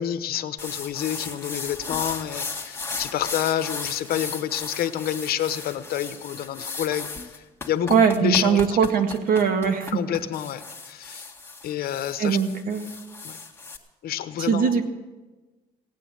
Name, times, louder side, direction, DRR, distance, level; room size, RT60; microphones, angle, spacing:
voice 1, 0.0-8.8 9.9-11.3 11.6-12.4 13.2-13.4 14.0-14.8, left 10 dB, 65° left, 10 dB, 1.0 m, -28 dB
sound 1, 0.6-13.8, left 4 dB, 15° left, 1.9 m, -36 dB
voice 2, 7.9-10.0 12.2-12.9 14.4-14.9, right 6 dB, 60° right, 6 dB, 1.8 m, -21 dB
17.5 x 9.1 x 7.7 m, 1.2 s
cardioid pair, 110°, 17 cm